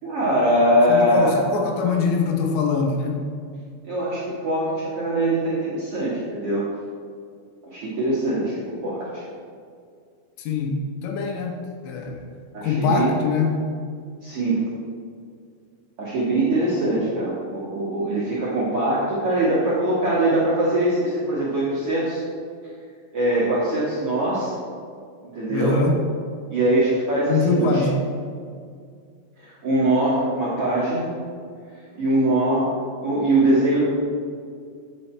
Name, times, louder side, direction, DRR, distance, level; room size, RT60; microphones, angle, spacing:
voice 1, 0.0-1.4 3.8-6.6 7.7-9.2 12.5-13.1 14.2-14.6 16.0-22.2 23.1-24.5 25.3-25.8 26.5-27.9 29.4-31.1 31.9-32.7 33.0-33.8, right 1 dB, 70° right, -9 dB, 1.3 m, -22 dB
voice 2, 0.9-3.2 10.4-11.5 11.8-12.2 12.6-13.6 25.5-26.0 27.3-28.0, left 4 dB, 75° left, 2 dB, 3.0 m, -23 dB
8.7 x 6.9 x 4.4 m, 2.2 s
omnidirectional pair, 5.5 m